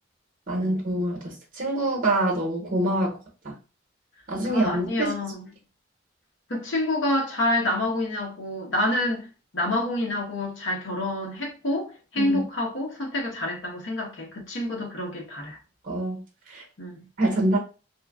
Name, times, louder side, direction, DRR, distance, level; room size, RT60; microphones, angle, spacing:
voice 1, 0.5-3.2 3.4-3.5 4.3-5.1 12.2-12.4 15.8-16.2 16.5-16.6 17.2-17.6, right 1 dB, 45° right, 0.9 m, -25 dB
voice 2, 4.5-5.5 6.5-15.6 16.8-17.0, left 1 dB, 80° left, 0.9 m, -28 dB
2.9 x 2.3 x 2.3 m
head